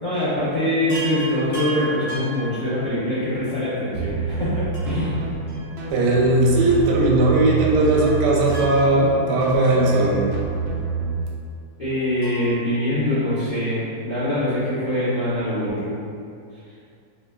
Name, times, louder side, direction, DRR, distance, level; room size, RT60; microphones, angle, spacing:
voice 1, 0.0-5.2 11.8-16.0, left 1 dB, 45° left, -12 dB, 0.6 m, -24 dB
Chime, 0.9-3.3 4.7-6.3 6.5-6.6 7.8-10.5 12.2-13.8 15.4-15.5 15.7-15.8, right 2 dB, 70° left, 1.8 m, -37 dB
sound 1, 3.9-11.3, right 4 dB, 70° right, 0.9 m, -28 dB
voice 2, 5.9-10.3, right 2 dB, 90° right, -1 dB, 1.2 m, -18 dB
4.2 x 2.6 x 2.3 m, 2.4 s
omnidirectional pair, 1.8 m